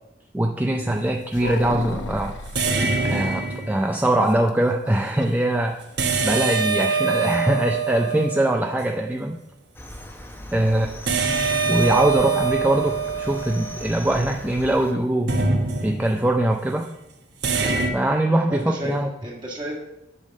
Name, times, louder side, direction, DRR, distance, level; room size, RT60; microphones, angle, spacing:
voice 1, 0.3-2.4 3.0-5.8 6.2-9.4 10.5-10.9 11.7-15.4 15.8-16.9 17.9-19.1, right 1 dB, 10° right, 3 dB, 0.4 m, -22 dB
sound 1, 0.8-1.1 2.5-4.1 6.0-9.0 11.1-14.4 15.3-16.3 17.4-17.9, right 4 dB, 60° right, 1.2 m, -24 dB
sound 2, 1.3-2.8 4.5-5.4 5.7-5.8 6.2-6.5, left 3 dB, 80° left, 0.7 m, -33 dB
Cricket, 9.7-14.9, left 1 dB, 10° left, 0.8 m, -39 dB
voice 2, 18.5-19.0 19.2-19.7, right 1 dB, 25° right, -3 dB, 1.7 m, -33 dB
8.3 x 5.4 x 6.5 m, 0.89 s
head